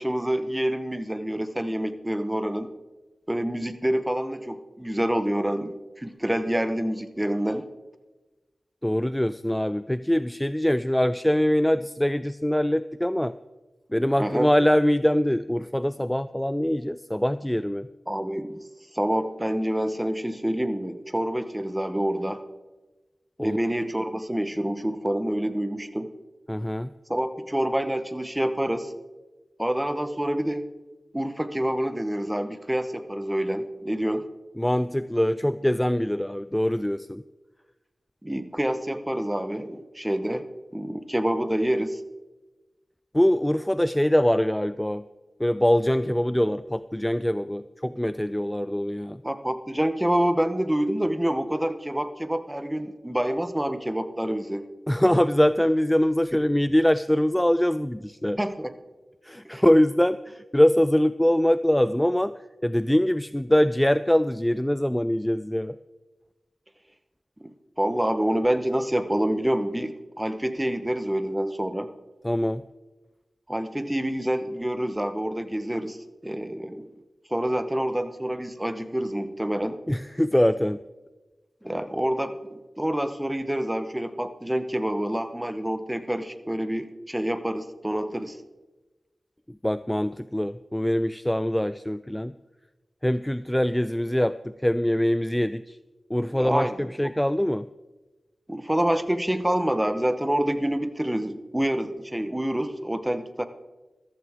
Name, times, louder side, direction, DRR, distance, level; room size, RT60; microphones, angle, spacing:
voice 1, 0.0-2.7 3.3-7.6 14.2-14.5 18.1-18.6 18.9-22.4 23.4-26.1 27.1-28.9 29.6-30.6 31.1-34.3 38.2-40.5 40.7-42.0 49.2-54.7 58.4-58.7 59.4-59.6 67.4-67.5 67.8-71.9 73.5-76.9 77.3-79.8 81.6-88.4 96.3-97.1 98.5-103.4, right 1 dB, 10° right, 10 dB, 1.0 m, -27 dB
voice 2, 8.8-13.3 13.9-17.9 23.4-23.6 26.5-26.9 34.6-37.2 43.1-45.1 45.4-49.2 54.9-58.4 59.2-62.3 62.6-65.8 72.2-72.6 79.9-80.8 89.5-92.3 93.0-95.8 96.1-97.7, equal, 10° left, 14 dB, 0.3 m, -23 dB
14.5 x 14.0 x 3.6 m, 1.2 s
cardioid pair, 55°, 0 cm